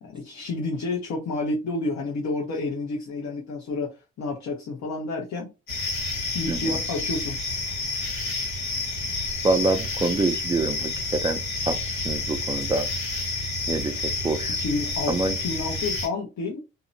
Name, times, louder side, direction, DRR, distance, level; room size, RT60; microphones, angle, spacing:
voice 1, 0.0-5.5 6.3-7.4 14.6-16.6, left 3 dB, 60° left, 0.7 m, -30 dB
sound 1, 5.7-16.1, left 2 dB, 90° left, 1.1 m, -29 dB
voice 2, 9.4-11.8 12.0-12.9 13.7-14.6 15.1-15.4, right 3 dB, 15° right, 0.3 m, -26 dB
2.7 x 2.0 x 2.5 m
cardioid pair, 70°, 33 cm